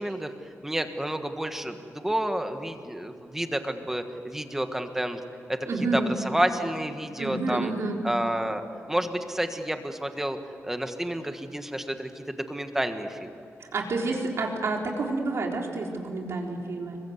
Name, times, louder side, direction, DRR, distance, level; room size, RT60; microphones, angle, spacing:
voice 1, 0.0-5.2 5.5-7.7 8.0-8.6 8.9-10.4 10.6-13.3, right 1 dB, 5° right, 6 dB, 1.5 m, -30 dB
voice 2, 5.7-6.1 7.2-8.0 13.7-17.0, right 3 dB, 65° right, 0 dB, 3.9 m, -29 dB
27.0 x 23.5 x 8.1 m, 2.6 s
wide cardioid pair, 175°, 5 cm